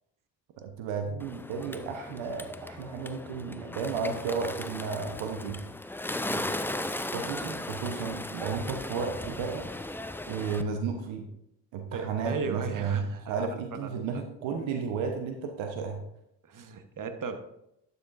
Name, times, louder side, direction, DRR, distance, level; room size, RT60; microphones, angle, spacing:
voice 1, 0.6-5.6 7.1-9.7 10.3-11.3 11.7-16.0, right 5 dB, 65° right, 4 dB, 1.1 m, -33 dB
Bird, 1.2-10.6, left 1 dB, 5° left, 0.5 m, -37 dB
voice 2, 11.9-13.5 13.8-14.2 16.5-17.4, right 5 dB, 40° right, 7 dB, 1.3 m, -36 dB
11.5 x 6.8 x 2.6 m, 0.79 s
hypercardioid pair, 50°, 49 cm